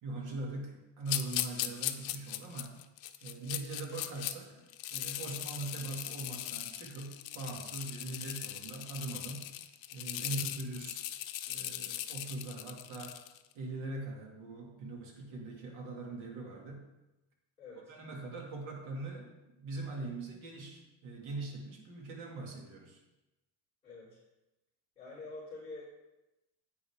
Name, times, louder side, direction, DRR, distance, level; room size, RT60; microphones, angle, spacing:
voice 1, 0.0-2.8 3.2-4.6 4.9-9.5 9.9-11.0 11.5-13.2 13.5-16.9 17.9-19.3 19.6-23.0, right 2 dB, 85° right, 0 dB, 2.5 m, -41 dB
sound 1, 1.1-4.3 4.7-13.4, left 13 dB, 70° left, 0.8 m, -39 dB
voice 2, 17.6-17.9 23.8-24.2 25.0-25.8, left 3 dB, 15° left, -11 dB, 3.6 m, -47 dB
9.6 x 8.5 x 3.6 m, 0.98 s
cardioid pair, 165°, 47 cm